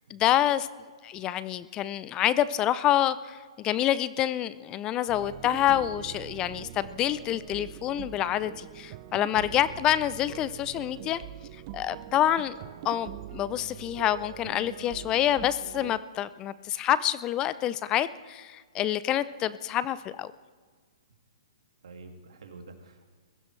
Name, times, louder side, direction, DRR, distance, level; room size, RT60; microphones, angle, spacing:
voice 1, 0.1-0.7 1.0-11.2 11.7-12.6 12.8-20.3, left 12 dB, 25° left, 16 dB, 0.5 m, -27 dB
sound 1, 5.1-16.0, right 14 dB, 40° right, 0.6 m, -43 dB
voice 2, 21.8-23.1, right 4 dB, 75° right, 4 dB, 2.4 m, -47 dB
22.0 x 15.5 x 3.3 m, 1.5 s
hypercardioid pair, 130°, 3 cm